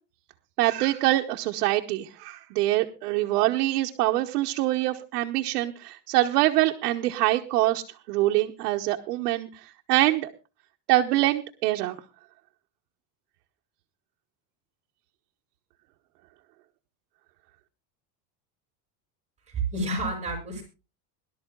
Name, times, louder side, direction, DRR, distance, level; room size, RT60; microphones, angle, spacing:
voice 1, 0.6-7.8 8.1-10.3 10.9-12.0, right 16 dB, 90° right, 2 dB, 1.2 m, -24 dB
voice 2, 19.5-20.6, right 2 dB, 15° right, 1 dB, 7.2 m, -29 dB
22.5 x 12.0 x 2.3 m, 0.30 s
supercardioid pair, 145°, 46 cm